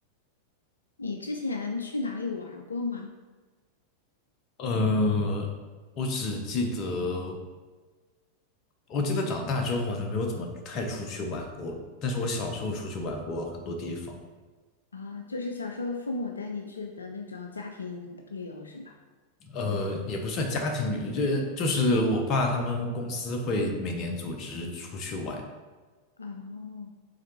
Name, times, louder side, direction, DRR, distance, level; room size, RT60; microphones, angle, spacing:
voice 1, 1.0-3.1 14.9-19.0 26.2-26.9, left 3 dB, 75° left, 3 dB, 0.3 m, -35 dB
voice 2, 4.6-5.5 6.0-7.4 8.9-14.2 19.4-25.5, left 2 dB, 35° left, 3 dB, 0.7 m, -29 dB
4.9 x 3.4 x 3.0 m, 1.3 s
figure-of-eight pair, 90°, 0 cm